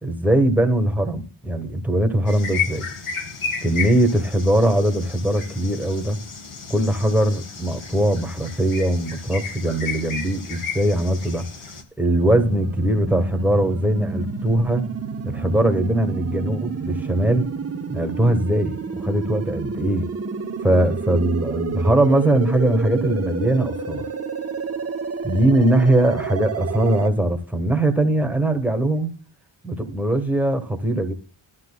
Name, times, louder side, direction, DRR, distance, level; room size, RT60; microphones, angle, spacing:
voice 1, 0.0-2.9 3.6-6.2 6.7-11.4 12.0-14.9 15.2-17.5 17.9-20.1 20.6-24.0 25.2-29.1 29.6-31.1, right 1 dB, 5° right, 1.2 m, -21 dB
sound 1, 2.3-11.8, left 6 dB, 85° left, 2.0 m, -33 dB
sound 2, 12.2-27.1, right 5 dB, 30° right, 0.8 m, -29 dB
13.0 x 12.0 x 2.2 m
wide cardioid pair, 140°, 50 cm